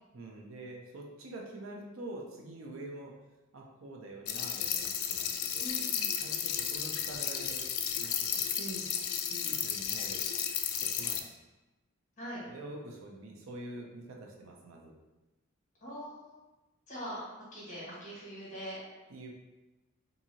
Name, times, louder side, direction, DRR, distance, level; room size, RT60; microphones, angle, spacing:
voice 1, 0.1-3.1 3.5-5.8 6.2-8.9 9.1-10.2 10.8-11.3 12.4-14.9 19.1-19.3, right 2 dB, 65° right, 0 dB, 0.5 m, -46 dB
sound 1, 4.3-11.2, left 8 dB, 80° left, 0.3 m, -33 dB
voice 2, 5.6-6.1 12.2-12.4 15.8-16.4 16.9-17.2 17.5-18.8, equal, 35° left, -8 dB, 1.4 m, -42 dB
2.7 x 2.6 x 2.7 m, 1.1 s
head